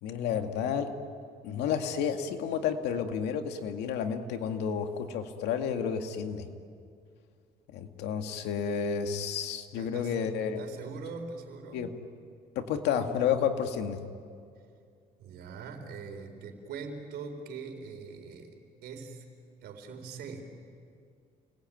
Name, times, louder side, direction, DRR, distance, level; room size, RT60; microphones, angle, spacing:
voice 1, 0.0-0.9 1.4-6.5 7.7-10.6 11.7-11.9 12.6-14.0, left 7 dB, 85° left, 5 dB, 2.1 m, -31 dB
voice 2, 9.7-10.2 10.6-11.9 15.2-19.2 19.6-20.4, right 5 dB, 75° right, 5 dB, 4.4 m, -42 dB
29.5 x 20.0 x 9.2 m, 2.3 s
cardioid pair, 110°, 17 cm